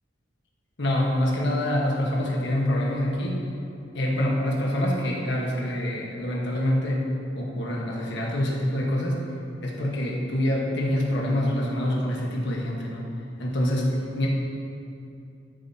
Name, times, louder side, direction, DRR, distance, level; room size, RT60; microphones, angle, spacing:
voice 1, 0.8-3.4 3.9-7.1 7.3-9.2 9.6-13.1 13.4-14.3, left 1 dB, 65° left, -2 dB, 1.4 m, -26 dB
12.5 x 7.1 x 2.9 m, 2.7 s
head